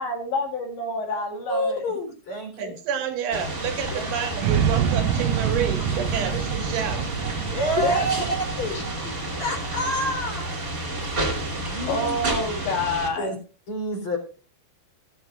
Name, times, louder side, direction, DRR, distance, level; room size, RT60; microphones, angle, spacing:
voice 1, 0.0-1.8 7.8-8.3 8.7-8.8 11.9-13.3, left 2 dB, 65° left, 3 dB, 4.2 m, -27 dB
voice 2, 1.5-2.7 3.9-4.1 7.5-8.1 8.6-9.1 9.4-10.5 11.5-12.1 13.2-13.3 13.7-14.2, equal, 30° left, 3 dB, 4.2 m, -28 dB
voice 3, 2.6-7.1, right 7 dB, 70° right, 6 dB, 3.9 m, -29 dB
sound 1, 3.3-13.1, right 1 dB, 20° right, 2.7 m, -30 dB
sound 2, 4.4-10.5, right 9 dB, 85° right, 3.6 m, -27 dB
20.0 x 11.0 x 2.5 m, 0.35 s
omnidirectional pair, 6.0 m